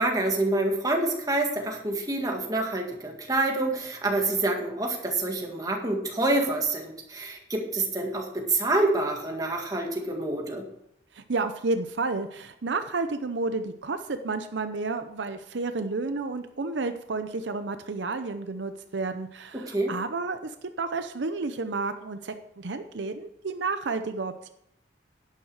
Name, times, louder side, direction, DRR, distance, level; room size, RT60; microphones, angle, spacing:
voice 1, 0.0-10.6 19.5-19.9, right 2 dB, 20° right, 1 dB, 1.9 m, -27 dB
voice 2, 11.1-24.5, right 3 dB, 70° right, 9 dB, 0.6 m, -31 dB
11.5 x 9.3 x 4.8 m, 0.76 s
head